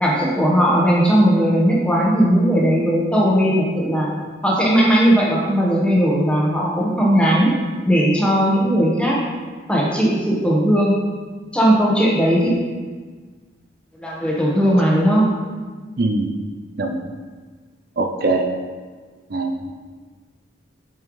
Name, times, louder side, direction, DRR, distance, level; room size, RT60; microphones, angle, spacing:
voice 1, 0.0-4.1 4.4-7.5 7.9-9.2 9.7-10.9 11.5-12.5 14.0-15.3, equal, 5° left, -4 dB, 1.1 m, -17 dB
voice 2, 16.0-16.3 16.8-17.0 18.0-18.4 19.3-19.7, right 2 dB, 50° right, 3 dB, 0.5 m, -21 dB
8.9 x 5.5 x 3.2 m, 1.5 s
head